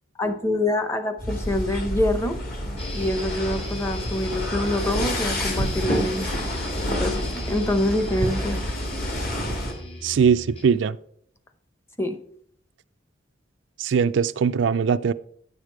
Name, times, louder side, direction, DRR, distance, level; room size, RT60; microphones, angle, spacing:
voice 1, 0.2-2.4 2.9-6.3 7.0-8.6 12.0-12.2, left 1 dB, 15° left, 8 dB, 0.7 m, -25 dB
sound 1, 1.2-9.7, equal, 50° left, 2.0 m, -28 dB
sound 2, 2.8-10.8, left 2 dB, 30° left, 1.6 m, -39 dB
voice 2, 10.0-11.0 13.8-15.1, right 6 dB, 75° right, 13 dB, 0.4 m, -21 dB
9.6 x 6.6 x 4.5 m, 0.65 s
head